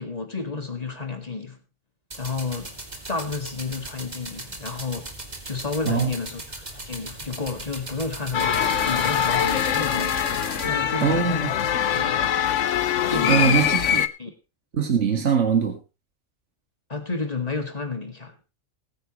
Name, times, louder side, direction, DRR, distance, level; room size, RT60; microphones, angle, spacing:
voice 1, 0.0-1.6 2.2-2.8 3.1-5.1 5.4-10.2 10.6-11.5 11.9-12.4 13.1-13.7 14.2-14.3 16.9-18.4, left 4 dB, 30° left, 2.1 m, -31 dB
sound 1, 2.1-10.7, right 2 dB, 35° right, 2.2 m, -38 dB
sound 2, 8.3-14.1, left 9 dB, 70° left, 1.1 m, -23 dB
voice 2, 11.0-11.5 13.3-14.0 14.7-15.8, right 6 dB, 65° right, 2.0 m, -22 dB
20.5 x 9.3 x 3.1 m
omnidirectional pair, 1.3 m